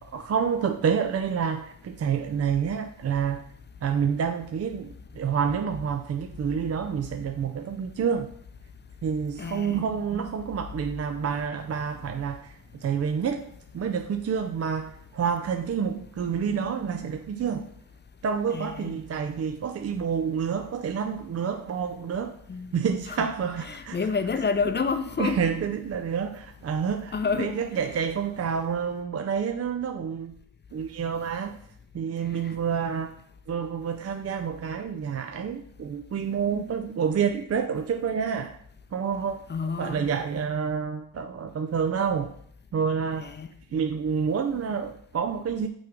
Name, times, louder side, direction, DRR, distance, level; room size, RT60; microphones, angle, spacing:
voice 1, 0.0-3.4 3.8-8.3 9.0-17.7 18.2-22.4 22.7-24.0 25.2-30.3 30.7-31.6 31.9-33.1 33.5-38.6 38.9-39.4 39.8-42.3 42.7-43.3 43.7-45.7, right 7 dB, 40° right, 0.5 m, -28 dB
voice 2, 9.4-9.9 18.5-18.9 22.5-22.7 23.1-23.3 23.6-25.4 27.1-27.6 39.5-40.1 43.2-43.5, left 5 dB, 25° left, 0.6 m, -29 dB
6.1 x 3.6 x 4.6 m
cardioid pair, 70°, 39 cm